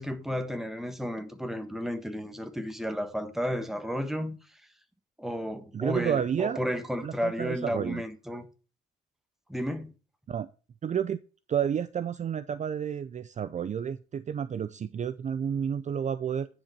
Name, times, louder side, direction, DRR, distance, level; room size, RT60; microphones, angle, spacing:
voice 1, 0.0-4.4 5.2-8.5 9.5-9.9, equal, ahead, 1.3 m, -33 dB
voice 2, 5.7-6.6 7.0-8.0 10.3-10.5 10.8-11.2 11.5-16.5, right 8 dB, 40° right, 0.5 m, -30 dB
10.0 x 5.2 x 6.1 m
cardioid pair, 120°, 19 cm